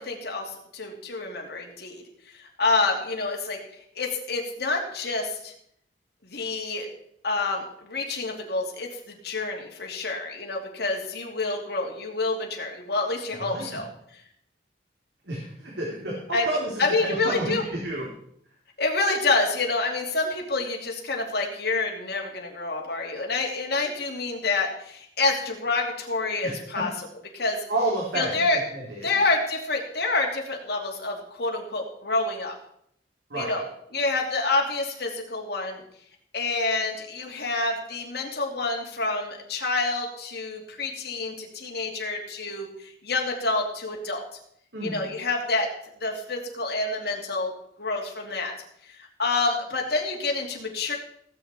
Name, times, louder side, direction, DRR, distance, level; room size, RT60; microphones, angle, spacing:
voice 1, 0.0-2.0 2.4-3.6 4.0-5.5 6.2-6.9 7.2-13.9 16.3-16.5 16.8-17.6 18.8-26.9 27.3-27.6 28.1-28.6 29.0-32.5 33.4-33.6 33.9-35.8 36.3-44.2 44.8-45.7 46.0-47.5 47.8-48.5 49.0-50.9, left 3 dB, 65° left, 1 dB, 2.9 m, -28 dB
voice 2, 13.4-13.8 15.2-18.1 26.4-26.8 27.7-29.1 33.3-33.6 44.7-45.0, right 2 dB, 75° right, -3 dB, 3.1 m, -31 dB
18.0 x 8.6 x 4.4 m, 0.70 s
head